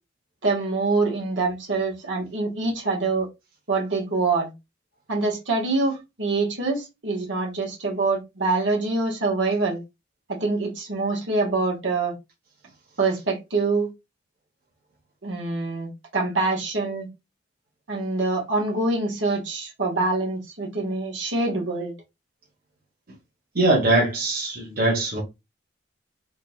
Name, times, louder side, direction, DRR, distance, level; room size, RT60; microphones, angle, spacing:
voice 1, 0.4-3.3 3.7-4.5 5.1-9.8 10.3-12.1 13.0-13.9 15.2-17.1 17.9-21.9, right 3 dB, 80° right, 1.7 m, -25 dB
voice 2, 23.5-25.2, right 2 dB, 50° right, 1.4 m, -21 dB
3.9 x 3.6 x 2.4 m
head